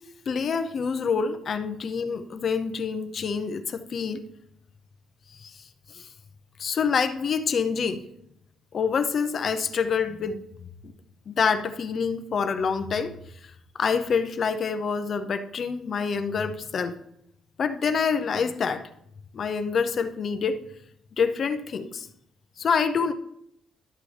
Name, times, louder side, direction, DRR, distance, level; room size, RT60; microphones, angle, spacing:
voice 1, 0.3-4.2 5.4-5.6 5.9-6.1 6.6-8.0 8.7-10.4 11.3-13.1 13.8-16.9 17.6-18.8 19.3-20.6 21.2-22.1 22.6-23.1, left 6 dB, 40° left, 9 dB, 0.6 m, -26 dB
12.0 x 6.6 x 3.3 m, 0.74 s
cardioid pair, 145°, 0 cm